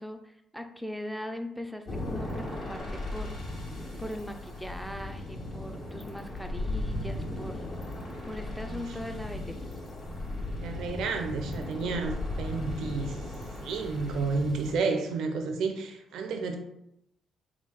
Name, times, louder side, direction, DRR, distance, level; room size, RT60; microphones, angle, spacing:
voice 1, 0.0-3.4 4.0-7.6 8.3-9.6, left 1 dB, ahead, 6 dB, 0.5 m, -40 dB
sound 1, 1.9-14.7, left 1 dB, 50° left, 1.4 m, -36 dB
voice 2, 10.5-13.2 13.6-16.6, right 4 dB, 80° right, 5 dB, 0.5 m, -31 dB
3.7 x 2.4 x 4.3 m, 0.77 s
cardioid pair, 90°, 0 cm